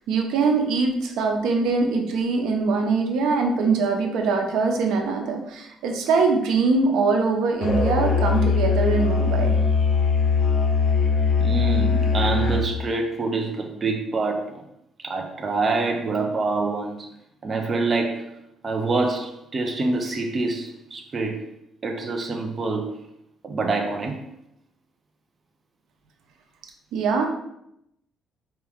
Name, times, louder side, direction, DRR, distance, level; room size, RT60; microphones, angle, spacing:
voice 1, 0.1-9.6 26.9-27.3, right 4 dB, 85° right, 3 dB, 0.8 m, -22 dB
Musical instrument, 7.6-12.7, left 5 dB, 50° left, 0.7 m, -21 dB
voice 2, 11.4-14.6 15.0-17.1 17.4-18.3 18.6-21.5 21.8-23.0 23.4-24.2, right 3 dB, 25° right, 2 dB, 0.5 m, -26 dB
4.6 x 2.9 x 3.5 m, 0.80 s
cardioid pair, 165°, 0 cm